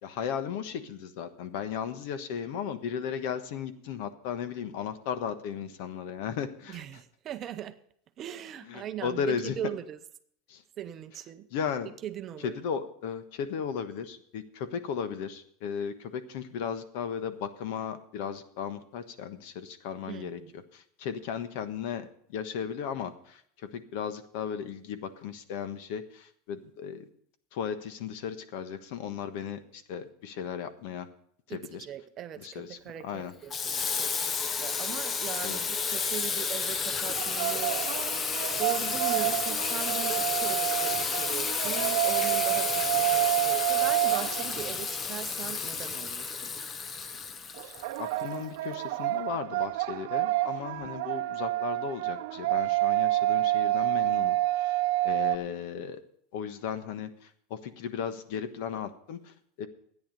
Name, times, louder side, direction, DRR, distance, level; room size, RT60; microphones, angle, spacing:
voice 1, 0.0-6.8 8.7-9.5 10.5-10.6 11.5-11.9 12.4-27.1 27.5-31.1 31.5-31.9 32.4-33.3 35.4-35.6 48.0-56.0 56.3-59.7, left 7 dB, 60° left, 1.2 m, -36 dB
voice 2, 6.7-7.8 8.2-10.0 10.8-11.5 12.0-12.6 20.1-20.5 31.5-37.9 38.6-46.5, right 10 dB, 30° right, 0.6 m, -40 dB
Water tap faucet / Sink (filling or washing), 33.5-48.3, left 5 dB, 20° left, 0.6 m, -31 dB
sound 1, 37.1-45.0 47.5-55.4, right 18 dB, 65° right, 0.7 m, -28 dB
13.5 x 9.6 x 5.3 m
supercardioid pair, 165°, 0 cm